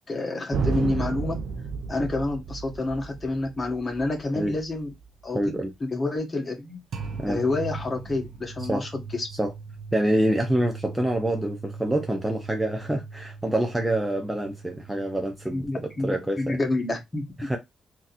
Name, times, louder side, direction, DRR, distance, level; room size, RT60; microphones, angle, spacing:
voice 1, 0.1-1.3 1.9-4.9 5.2-6.8 7.3-9.3 15.5-17.2, left 2 dB, 30° left, 1.5 m, -28 dB
sound 1, 0.5-5.6 6.9-16.9, right 5 dB, 70° right, 0.7 m, -36 dB
voice 2, 5.3-5.7 7.2-7.4 8.6-8.9 9.4-9.5 9.9-16.6 17.4-17.6, right 1 dB, 10° right, 0.7 m, -26 dB
3.7 x 2.9 x 2.5 m
cardioid pair, 85°, 0 cm